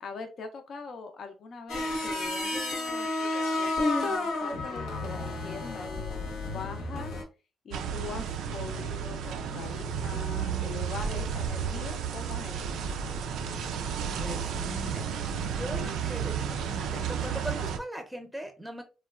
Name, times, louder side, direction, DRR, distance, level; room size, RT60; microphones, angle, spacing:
voice 1, 0.0-7.1 7.6-12.8, left 4 dB, 55° left, 6 dB, 0.4 m, -42 dB
sound 1, 1.7-7.2, left 2 dB, 85° left, 0.8 m, -31 dB
sound 2, 7.7-17.8, right 7 dB, 85° right, 0.3 m, -32 dB
voice 2, 14.2-15.1 15.5-16.4 16.6-18.8, equal, 5° right, 5 dB, 0.6 m, -39 dB
3.0 x 2.1 x 2.3 m, 0.31 s
cardioid pair, 90°, 0 cm